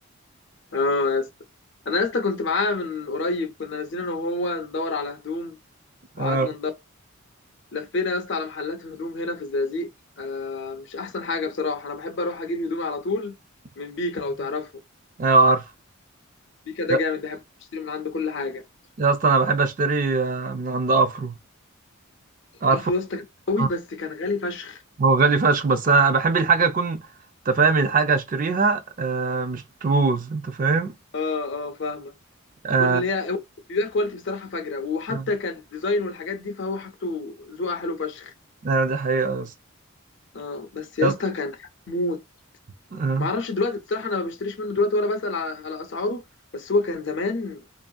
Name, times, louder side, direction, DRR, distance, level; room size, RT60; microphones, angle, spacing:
voice 1, 0.7-1.3 1.9-5.6 6.2-6.7 7.7-9.9 10.2-13.4 13.8-14.7 16.7-17.4 17.7-18.6 22.7-23.2 23.5-24.8 31.1-32.1 32.8-33.4 33.7-38.3 40.3-42.2 43.2-46.2 46.5-47.6, left 3 dB, 55° left, 0.6 m, -28 dB
voice 2, 6.2-6.5 15.2-15.7 16.9-17.0 19.0-21.3 22.6-22.9 23.6-23.7 25.0-27.1 27.5-30.9 32.6-33.0 35.1-35.2 38.6-39.5 41.0-41.1 42.9-43.3, right 4 dB, 35° right, 0.4 m, -21 dB
2.7 x 2.4 x 2.3 m
head